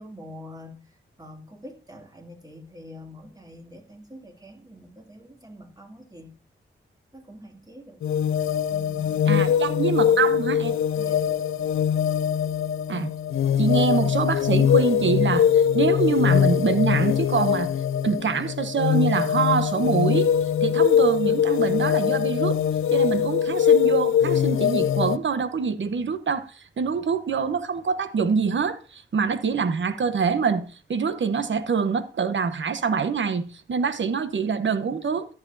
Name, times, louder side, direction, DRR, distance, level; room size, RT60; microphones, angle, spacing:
voice 1, 0.0-6.4 7.1-8.0 10.9-11.4, equal, 20° right, 2.5 m, -45 dB
sound 1, 8.0-25.2, left 8 dB, 80° left, 0.4 m, -22 dB
voice 2, 9.3-10.8 12.9-13.1 13.6-17.7 18.0-20.3 20.6-22.6 22.9-30.6 30.9-35.3, right 5 dB, 65° right, 1.0 m, -25 dB
14.0 x 8.2 x 2.7 m
cardioid pair, 45°, 21 cm